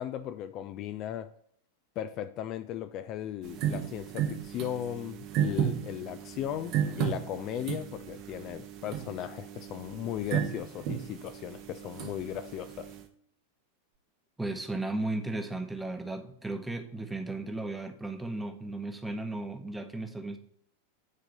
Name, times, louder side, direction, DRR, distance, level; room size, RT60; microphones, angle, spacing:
voice 1, 0.0-1.3 2.0-12.9, left 11 dB, 35° left, 0.4 m, -37 dB
sound 1, 3.4-13.0, right 9 dB, 40° right, 0.9 m, -34 dB
voice 2, 14.4-20.4, right 2 dB, 5° right, 1.0 m, -35 dB
9.7 x 3.7 x 5.4 m
figure-of-eight pair, 90°, 0 cm